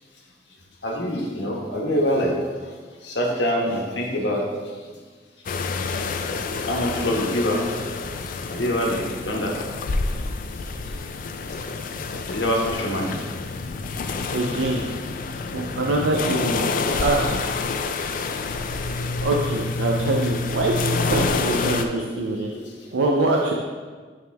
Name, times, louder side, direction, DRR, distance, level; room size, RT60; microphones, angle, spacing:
voice 1, 0.8-2.3 3.1-4.4 6.7-7.6 8.5-9.0 9.2-9.5 12.3-13.1 20.1-20.2 21.4-21.5 21.9-22.0 22.5-22.6, equal, 70° left, -1 dB, 1.2 m, -24 dB
sound 1, 5.5-21.9, left 4 dB, 50° left, 0.4 m, -28 dB
voice 2, 14.3-14.8 15.5-16.7 17.0-17.5 19.2-22.5 22.9-23.5, right 2 dB, 90° right, 0 dB, 0.5 m, -24 dB
8.7 x 3.6 x 3.4 m, 1.5 s
head